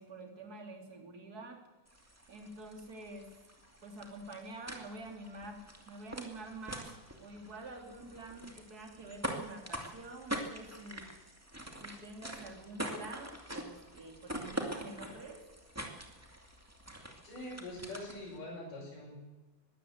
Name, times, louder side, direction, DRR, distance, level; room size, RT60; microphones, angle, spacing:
voice 1, 0.0-1.6 2.3-3.3 3.8-6.9 7.2-11.1 11.8-15.4, right 2 dB, 25° right, 3 dB, 3.3 m, -47 dB
sound 1, 1.9-18.4, right 1 dB, 5° right, 1.3 m, -44 dB
voice 2, 17.2-19.2, left 1 dB, 65° left, -4 dB, 7.1 m, -44 dB
21.0 x 15.5 x 8.1 m, 1.1 s
omnidirectional pair, 4.1 m